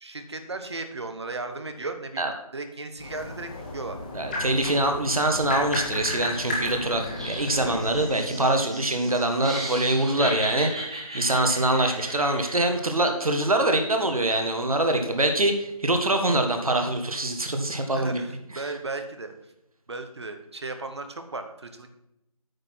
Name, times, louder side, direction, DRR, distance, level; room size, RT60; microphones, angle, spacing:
voice 1, 0.0-4.0 17.9-19.3 19.9-21.9, right 3 dB, 45° right, 7 dB, 1.1 m, -36 dB
sound 1, 3.0-8.1, left 1 dB, 15° left, 1.2 m, -33 dB
voice 2, 4.1-10.8 11.1-18.2 18.5-18.6, right 1 dB, 70° right, 5 dB, 1.5 m, -24 dB
Laughter, 7.0-12.8, right 1 dB, 10° right, 0.7 m, -36 dB
8.8 x 6.1 x 5.9 m, 0.86 s
figure-of-eight pair, 170°, 19 cm